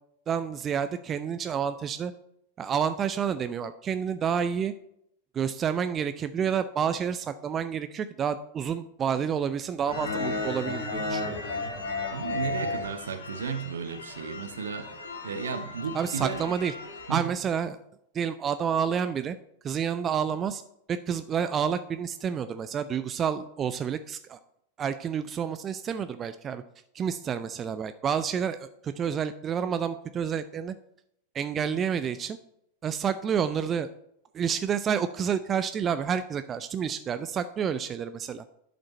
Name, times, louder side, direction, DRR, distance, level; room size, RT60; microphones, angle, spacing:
voice 1, 0.3-2.1 2.6-4.7 5.3-11.4 15.9-16.7 17.1-17.8 18.1-19.4 19.6-20.6 20.9-24.4 24.8-26.6 26.9-30.7 31.3-32.4 32.8-33.9 34.3-38.4, right 7 dB, 25° right, 12 dB, 0.4 m, -29 dB
sound 1, 9.8-17.2, left 3 dB, 60° left, 2.3 m, -34 dB
voice 2, 12.1-14.9 15.2-16.4 17.1-17.2, right 6 dB, 65° right, 9 dB, 0.8 m, -34 dB
11.0 x 5.2 x 4.2 m, 0.75 s
figure-of-eight pair, 90°, 0 cm